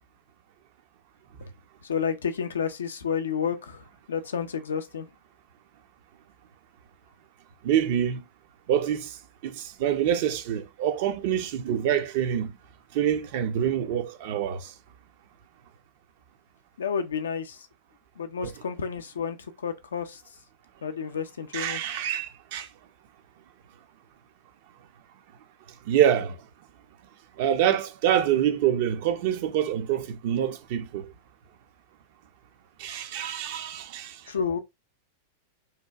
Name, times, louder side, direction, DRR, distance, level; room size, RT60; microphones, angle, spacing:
voice 1, 1.8-5.1 16.8-17.7 18.2-20.2 20.8-21.8 34.3-34.6, left 6 dB, 70° left, 0.4 m, -30 dB
voice 2, 7.6-8.2 8.7-9.1 9.4-12.6 12.9-14.7 18.4-18.5 21.5-22.7 25.9-26.4 27.4-31.1 32.8-34.2, right 10 dB, 50° right, 0.4 m, -26 dB
2.8 x 2.2 x 2.3 m
figure-of-eight pair, 90°, 0 cm